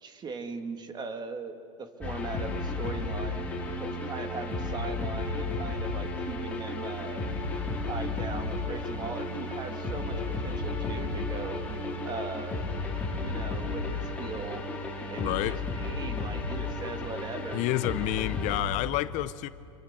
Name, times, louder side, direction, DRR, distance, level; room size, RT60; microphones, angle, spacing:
voice 1, 0.0-3.4 3.8-7.2 7.8-11.6 12.1-12.6 13.2-14.6 15.1-17.6, right 4 dB, 25° right, 2.1 m, -39 dB
sound 1, 2.0-18.6, left 2 dB, 10° left, 4.5 m, -33 dB
voice 2, 15.2-15.6 17.5-19.5, left 17 dB, 45° left, 0.7 m, -29 dB
27.0 x 23.0 x 7.5 m
supercardioid pair, 130°, 17 cm